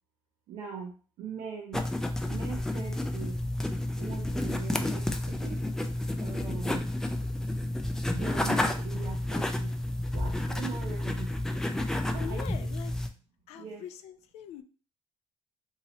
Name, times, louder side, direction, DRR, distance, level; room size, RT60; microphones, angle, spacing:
voice 1, 0.5-1.9 2.2-3.4 4.0-5.7 6.2-6.9 8.1-9.8 10.1-11.4 12.1-12.5 13.5-13.8, right 6 dB, 80° right, -1 dB, 0.6 m, -41 dB
sound 1, 1.7-13.1, left 1 dB, 5° left, 0.3 m, -31 dB
voice 2, 12.2-12.9 13.5-14.6, left 9 dB, 75° left, 8 dB, 0.4 m, -43 dB
2.9 x 2.8 x 2.8 m, 0.38 s
cardioid pair, 130°, 11 cm